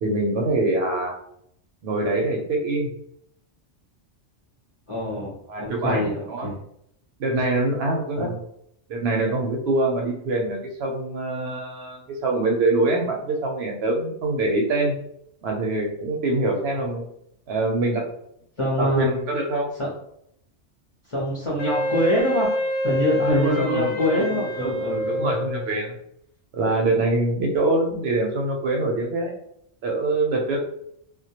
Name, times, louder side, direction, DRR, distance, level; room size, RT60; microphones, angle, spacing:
voice 1, 0.0-1.1 1.8-2.9 5.5-6.5 7.2-8.3 8.9-14.9 15.4-17.0 17.5-18.0 18.8-19.7 23.2-26.0 26.5-29.3 29.8-30.6, right 2 dB, 70° right, 1 dB, 0.8 m, -24 dB
voice 2, 4.9-6.6 8.1-8.3 18.6-19.1 19.8-19.9 21.1-22.6 22.8-25.4, left 1 dB, 35° left, -6 dB, 0.6 m, -25 dB
Wind instrument woodwind instrument, 21.6-25.8, left 1 dB, 90° left, 1.0 m, -26 dB
2.1 x 2.1 x 2.8 m, 0.71 s
omnidirectional pair, 1.2 m